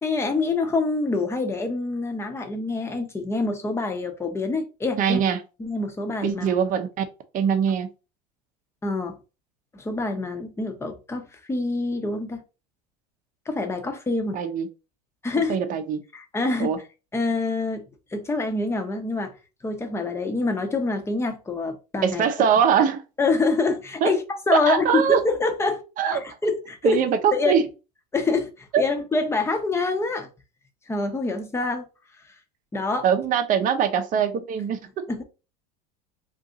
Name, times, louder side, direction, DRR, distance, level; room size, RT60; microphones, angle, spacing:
voice 1, 0.0-5.2 5.6-6.5 8.8-9.1 9.7-12.4 13.5-14.4 15.2-15.6 16.1-16.7 17.1-17.9 18.1-19.3 19.6-22.3 23.2-25.8 26.1-27.0 27.3-27.6 28.1-30.3 30.9-31.9 32.7-33.0 35.1-35.2, left 3 dB, 10° left, 0.7 m, -26 dB
voice 2, 5.0-5.4 6.2-7.0 7.3-7.9 14.3-14.7 15.5-16.0 16.6-16.8 22.0-23.0 24.0-24.1 24.7-25.2 26.0-26.2 26.8-27.6 28.7-28.8 33.0-34.8, right 7 dB, 40° right, 0.7 m, -22 dB
2.6 x 2.5 x 3.8 m
supercardioid pair, 110°, 21 cm